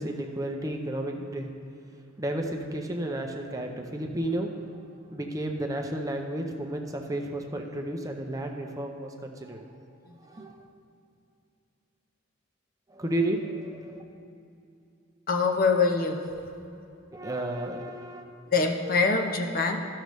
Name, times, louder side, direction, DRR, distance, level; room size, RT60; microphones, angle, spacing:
voice 1, 0.0-1.5 2.2-9.6 10.2-10.6 12.9-14.0 17.1-18.2, right 1 dB, 15° right, 3 dB, 0.5 m, -32 dB
voice 2, 10.1-10.5 15.3-16.2 18.5-19.8, left 4 dB, 45° left, 4 dB, 0.6 m, -25 dB
13.0 x 6.5 x 3.1 m, 2.6 s
head